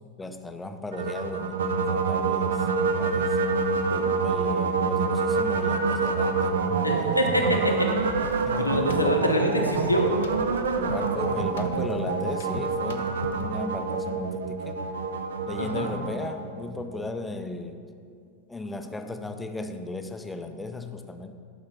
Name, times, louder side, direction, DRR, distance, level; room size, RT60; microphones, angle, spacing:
voice 1, 0.2-3.4 3.9-7.8 8.5-9.0 10.8-14.8 15.5-17.8 18.5-21.3, left 2 dB, 10° left, 7 dB, 0.6 m, -36 dB
sound 1, 0.9-17.1, right 4 dB, 65° right, 0.5 m, -27 dB
voice 2, 6.8-7.9 8.6-10.1 15.6-15.9, equal, 85° left, 1 dB, 0.9 m, -25 dB
sound 2, 8.2-13.6, left 6 dB, 60° left, 0.5 m, -41 dB
11.5 x 4.1 x 5.7 m, 2.3 s
figure-of-eight pair, 90°, 0 cm